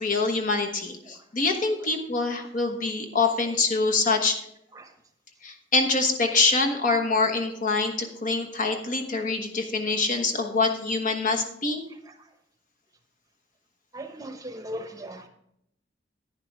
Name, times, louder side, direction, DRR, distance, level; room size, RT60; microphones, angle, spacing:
voice 1, 0.0-4.4 5.4-11.8, left 3 dB, 45° left, 4 dB, 1.2 m, -25 dB
voice 2, 13.9-15.3, equal, 20° right, 6 dB, 0.9 m, -38 dB
10.5 x 9.8 x 3.5 m, 0.75 s
head